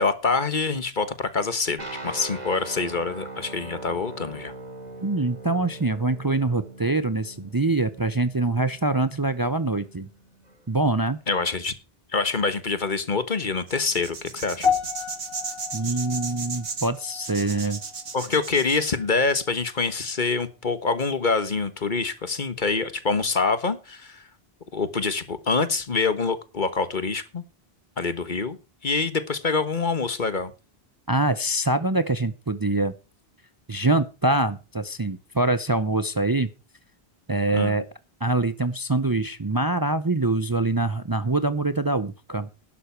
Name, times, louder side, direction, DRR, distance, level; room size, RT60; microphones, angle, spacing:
voice 1, 0.0-4.5 11.3-11.7 12.1-14.7 18.1-24.2 24.7-27.4 28.0-28.6 28.8-30.5 37.5-37.8, left 4 dB, 50° left, 13 dB, 1.5 m, -25 dB
sound 1, 1.8-10.7, right 2 dB, 45° right, 2.7 m, -41 dB
voice 2, 5.0-10.1 10.7-11.2 15.7-17.8 31.1-32.9 33.7-36.5 37.3-37.9 38.2-42.5, right 2 dB, 25° right, 13 dB, 0.7 m, -24 dB
sound 2, 13.7-18.9, right 4 dB, 70° right, 1.8 m, -35 dB
sound 3, 14.6-19.0 19.3-19.7 20.3-20.4, left 6 dB, 65° left, 2.4 m, -32 dB
12.0 x 11.0 x 4.5 m, 0.30 s
omnidirectional pair, 1.0 m